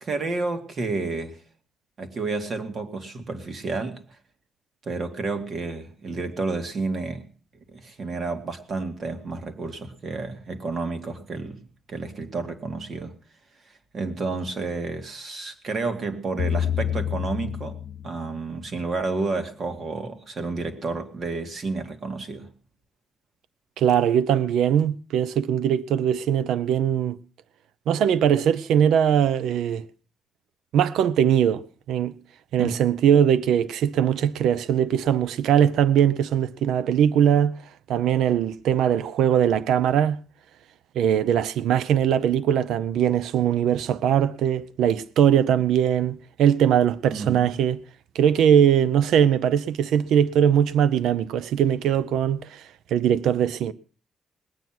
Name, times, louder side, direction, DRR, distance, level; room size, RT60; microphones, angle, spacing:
voice 1, 0.0-1.4 2.0-4.0 4.9-7.3 7.7-11.6 11.9-13.1 13.9-17.8 18.0-22.5 32.6-32.8 47.1-47.5, right 3 dB, 45° right, 2.2 m, -30 dB
sound 1, 16.4-18.6, left 9 dB, 60° left, 0.7 m, -28 dB
voice 2, 23.8-27.2 27.9-29.8 30.7-32.1 32.5-37.5 37.9-40.2 41.0-47.8 48.1-52.6 52.9-53.7, right 9 dB, 85° right, 0.6 m, -21 dB
20.0 x 9.4 x 6.0 m
cardioid pair, 130°, 0 cm